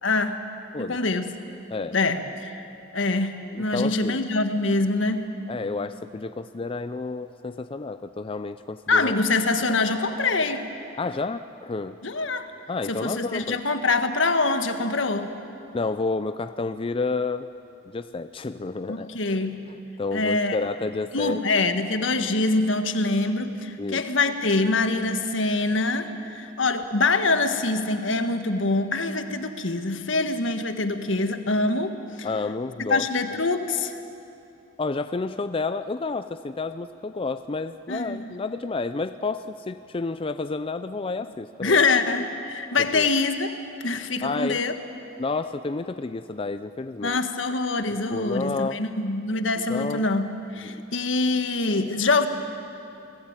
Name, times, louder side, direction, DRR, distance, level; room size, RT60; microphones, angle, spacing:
voice 1, 0.0-0.4 0.8-1.3 1.9-2.7 2.9-5.3 8.9-10.7 12.0-12.5 12.9-15.3 18.9-19.6 20.1-20.6 21.1-32.3 32.9-34.0 37.9-38.3 41.6-43.5 43.8-44.7 47.0-52.3, left 3 dB, 80° left, 8 dB, 1.6 m, -24 dB
voice 2, 3.5-4.2 5.5-9.2 11.0-12.0 12.7-13.6 15.7-17.5 17.9-19.2 20.0-21.4 23.8-24.0 32.2-33.1 34.8-41.8 42.8-43.1 44.2-44.6 45.2-47.2 48.1-48.8 49.7-50.0 50.6-50.8, left 3 dB, 30° left, 11 dB, 0.5 m, -30 dB
28.5 x 19.0 x 8.9 m, 2.9 s
head